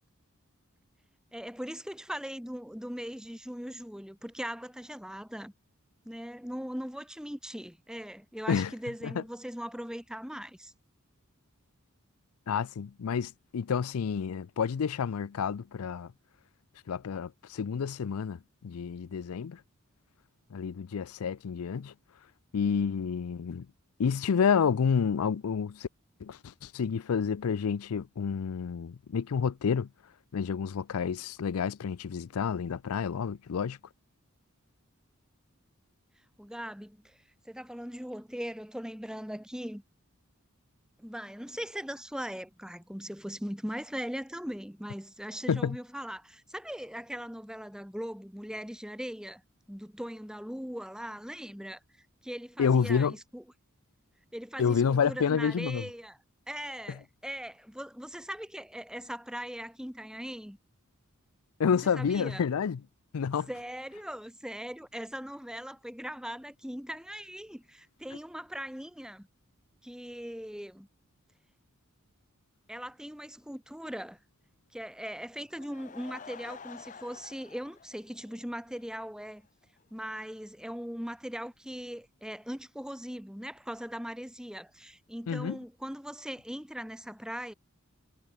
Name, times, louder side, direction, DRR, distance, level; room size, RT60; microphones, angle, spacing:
voice 1, 1.3-5.5 6.0-10.7 36.4-37.2 37.4-39.8 41.0-49.4 49.7-53.4 54.3-56.2 56.5-60.6 61.9-62.4 63.5-69.3 69.8-70.9 72.7-74.2 74.7-79.4 79.9-87.5, equal, 5° right, 1.8 m, -40 dB
voice 2, 12.5-16.1 16.9-19.6 20.5-21.9 22.5-23.7 24.0-25.9 26.2-29.9 30.3-33.8 45.5-45.8 52.6-53.1 54.6-55.8 61.6-62.8 63.1-63.5 85.3-85.6, left 6 dB, 85° left, 0.4 m, -29 dB
Laughter / Crowd, 75.4-78.8 79.2-79.3 79.8-79.9 80.1-80.2, left 5 dB, 35° left, 0.8 m, -49 dB
head